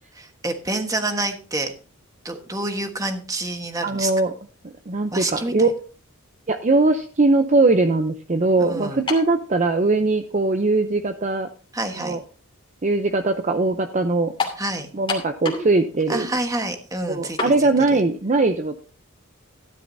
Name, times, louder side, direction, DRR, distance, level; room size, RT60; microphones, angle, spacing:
voice 1, 0.2-1.7 2.2-4.1 5.1-5.7 8.6-9.0 11.7-12.2 14.6-14.9 16.1-18.0, right 2 dB, 15° right, 6 dB, 1.3 m, -28 dB
voice 2, 3.8-4.3 4.6-5.7 6.5-11.5 12.0-12.2 12.8-14.3 14.9-16.3 17.1-18.8, right 3 dB, 35° right, 8 dB, 0.6 m, -20 dB
sound 1, 9.1-9.4 10.3-10.4 14.4-14.6 15.1-15.7 16.0-16.1 17.4-17.6, left 4 dB, 25° left, 2.7 m, -27 dB
13.5 x 11.5 x 2.7 m, 0.39 s
head